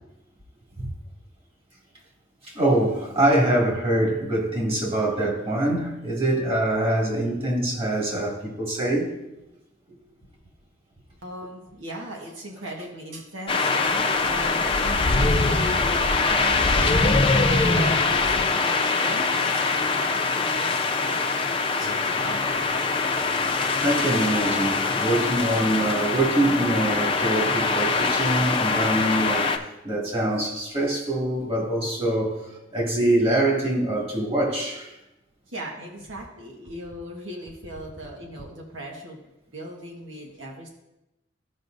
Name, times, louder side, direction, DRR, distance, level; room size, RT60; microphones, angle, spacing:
voice 1, 2.4-9.1 23.8-32.4 32.7-34.9, right 1 dB, 30° right, 2.3 m, -24 dB
voice 2, 11.2-17.3 17.6-21.3 21.8-22.8 35.5-40.7, right 1 dB, 90° right, 1.4 m, -38 dB
sound 1, 13.5-29.6, left 3 dB, 30° left, 0.7 m, -23 dB
15.5 x 5.6 x 2.6 m
head